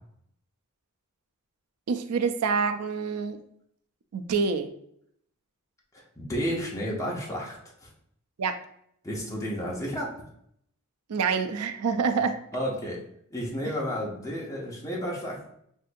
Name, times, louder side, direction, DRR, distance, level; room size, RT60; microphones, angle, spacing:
voice 1, 1.9-3.4 4.1-4.7 8.4-8.6 11.1-12.4, right 5 dB, 80° right, 7 dB, 0.4 m, -26 dB
voice 2, 6.2-7.9 9.0-10.1 12.5-13.0 13.3-15.4, equal, 15° left, -3 dB, 0.9 m, -31 dB
6.4 x 2.6 x 2.5 m, 0.70 s
head